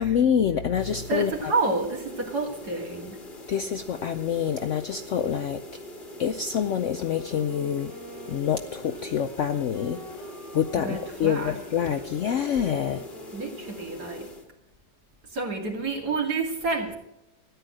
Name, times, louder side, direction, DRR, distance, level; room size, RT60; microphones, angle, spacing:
voice 1, 0.0-1.3 3.5-5.6 6.2-7.9 8.3-13.0, left 8 dB, 65° left, 9 dB, 0.7 m, -26 dB
sound 1, 0.8-14.5, left 1 dB, 30° left, 1.6 m, -42 dB
voice 2, 1.1-3.2 10.7-11.5 13.3-14.3 15.3-16.9, right 3 dB, 65° right, 0 dB, 3.1 m, -29 dB
Wind instrument woodwind instrument, 7.0-14.6, right 1 dB, 35° right, 2.7 m, -46 dB
13.5 x 10.5 x 6.3 m, 0.89 s
omnidirectional pair, 1.8 m